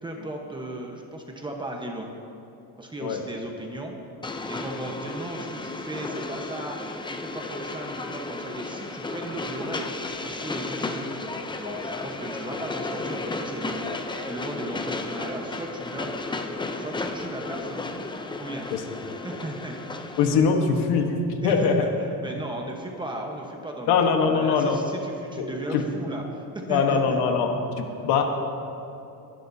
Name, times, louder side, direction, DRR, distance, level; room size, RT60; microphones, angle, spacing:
voice 1, 0.0-2.1 2.8-3.9 4.5-9.9 10.2-16.1 16.7-17.8 18.4-18.7 19.2-19.8 21.4-27.2, right 1 dB, 10° right, 1 dB, 1.1 m, -36 dB
Train, 4.2-20.4, left 3 dB, 10° left, 0.5 m, -34 dB
voice 2, 11.6-12.0 13.8-14.2 18.7-18.8 20.2-21.8 23.9-24.8 25.4-25.8 26.7-28.2, left 5 dB, 80° left, 3 dB, 1.3 m, -23 dB
22.5 x 11.5 x 2.8 m, 2.8 s
cardioid pair, 140°, 39 cm